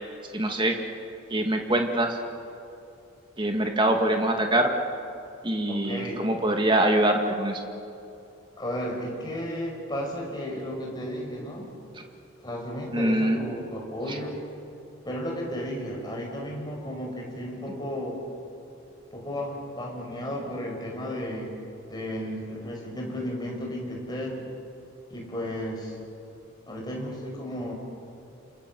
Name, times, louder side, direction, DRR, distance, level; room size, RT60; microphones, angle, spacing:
voice 1, 0.3-0.8 1.3-2.2 3.4-4.7 5.4-7.6 12.9-13.4, right 1 dB, 20° right, 3 dB, 2.0 m, -24 dB
voice 2, 5.7-6.2 8.6-11.7 12.4-14.4 15.0-18.2 19.1-21.6 21.9-24.4 25.1-26.0 26.7-27.7, equal, 20° left, -1 dB, 5.6 m, -33 dB
28.5 x 27.0 x 7.6 m, 2.7 s
head